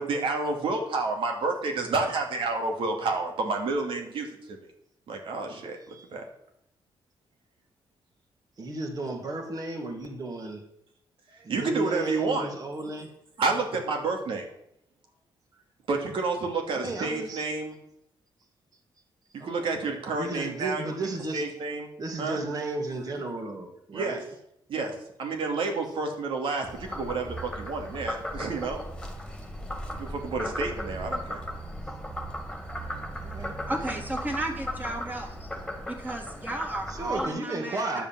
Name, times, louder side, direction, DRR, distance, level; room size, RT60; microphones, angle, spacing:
voice 1, 0.0-4.6 5.1-6.3 11.5-12.5 13.4-14.5 15.9-17.8 19.3-20.8 21.3-21.9 22.2-22.4 23.9-24.2 24.7-24.9 25.2-28.8 29.9-31.4, right 3 dB, 70° right, 3 dB, 2.7 m, -30 dB
voice 2, 8.6-10.7 11.3-13.1 16.7-17.5 19.4-19.8 20.1-21.5 22.0-24.2 27.4-27.5 28.1-28.2 33.2-33.6 36.9-38.1, right 2 dB, 40° right, 2 dB, 2.7 m, -34 dB
Frog, 26.7-37.3, equal, 10° left, 2.3 m, -36 dB
voice 3, 33.7-35.5 35.9-38.0, right 2 dB, 20° right, 2 dB, 2.8 m, -34 dB
11.0 x 7.2 x 7.7 m, 0.76 s
cardioid pair, 105°, 9 cm